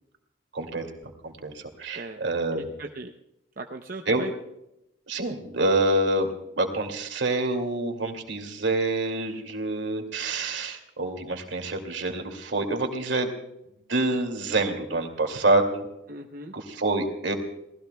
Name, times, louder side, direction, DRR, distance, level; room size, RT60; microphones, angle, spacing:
voice 1, 0.5-0.9 1.2-2.7 4.1-4.3 5.1-13.3 13.9-15.9 16.5-17.3, right 2 dB, 70° right, 4 dB, 2.5 m, -27 dB
voice 2, 2.5-3.1 3.6-4.3 16.1-16.5, right 2 dB, 45° right, 3 dB, 0.7 m, -38 dB
29.0 x 19.0 x 2.3 m, 0.85 s
head